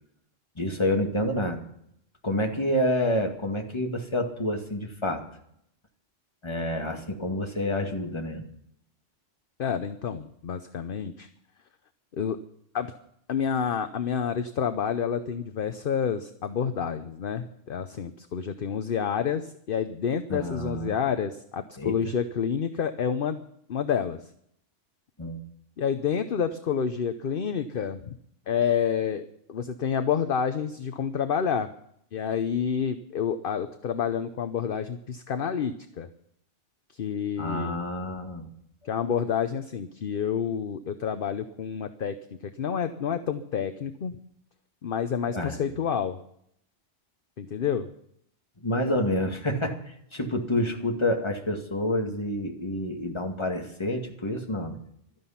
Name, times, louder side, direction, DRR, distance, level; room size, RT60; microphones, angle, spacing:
voice 1, 0.6-1.6 2.2-5.2 6.4-8.4 20.3-20.9 21.8-22.0 25.2-25.4 37.4-38.5 45.3-45.6 48.6-54.8, left 1 dB, 25° left, 3 dB, 2.0 m, -28 dB
voice 2, 9.6-11.3 12.1-12.4 12.7-12.9 13.3-23.4 23.7-24.3 25.8-28.2 28.5-31.7 32.1-36.1 36.9-37.8 38.8-44.2 44.8-46.2 47.4-47.9, left 7 dB, 50° left, 9 dB, 0.9 m, -29 dB
16.0 x 13.0 x 5.8 m, 0.70 s
omnidirectional pair, 1.2 m